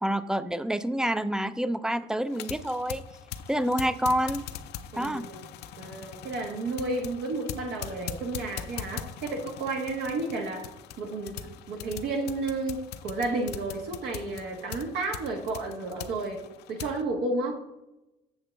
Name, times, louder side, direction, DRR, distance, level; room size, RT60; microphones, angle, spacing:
voice 1, 0.0-3.0 3.5-4.4 5.0-5.3, equal, 5° right, 14 dB, 0.3 m, -27 dB
sound 1, 2.3-17.0, left 9 dB, 80° left, 0.6 m, -41 dB
voice 2, 4.9-5.4 5.8-10.7 11.0-17.6, right 2 dB, 85° right, 2 dB, 1.4 m, -32 dB
8.0 x 6.5 x 3.3 m, 0.92 s
cardioid pair, 110°, 17 cm